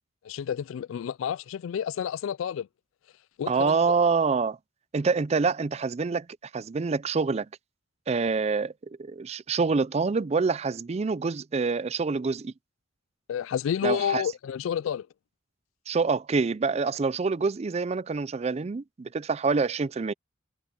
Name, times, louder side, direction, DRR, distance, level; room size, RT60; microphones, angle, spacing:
voice 1, 0.2-2.7 3.4-4.0 13.3-15.1, left 8 dB, 80° left, 0.3 m, -30 dB
voice 2, 3.5-4.6 4.9-6.3 6.5-7.5 8.1-8.7 9.0-12.5 13.8-14.2 15.9-20.1, right 4 dB, 30° right, 0.4 m, -26 dB
head